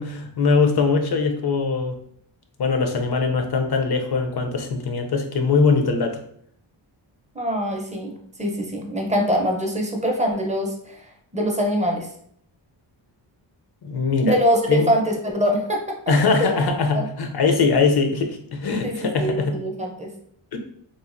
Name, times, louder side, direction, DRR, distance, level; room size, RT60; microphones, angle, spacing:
voice 1, 0.0-2.0 2.6-6.2 13.8-14.4 14.7-14.9 16.1-19.6 20.5-20.6, left 4 dB, 55° left, 5 dB, 0.6 m, -21 dB
voice 2, 7.3-12.1 14.2-16.1 16.4-16.5 16.9-17.1 18.8-20.1, equal, 15° right, 1 dB, 0.5 m, -24 dB
3.1 x 2.4 x 2.5 m, 0.66 s
cardioid pair, 80°, 49 cm